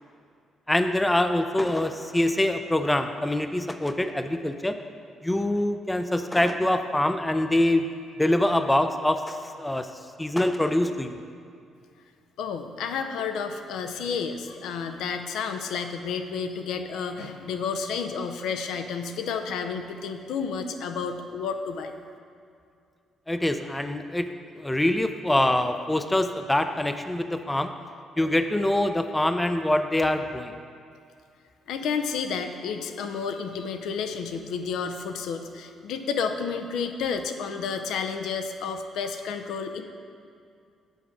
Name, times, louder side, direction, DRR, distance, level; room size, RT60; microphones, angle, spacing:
voice 1, 0.7-4.7 5.2-7.8 8.2-9.9 10.2-11.2 23.3-24.3 24.6-27.7 28.2-30.5, left 1 dB, 10° left, 8 dB, 0.4 m, -24 dB
voice 2, 12.4-21.9 31.7-39.8, left 6 dB, 85° left, 6 dB, 0.6 m, -31 dB
8.1 x 4.9 x 5.9 m, 2.4 s
cardioid pair, 90°, 0 cm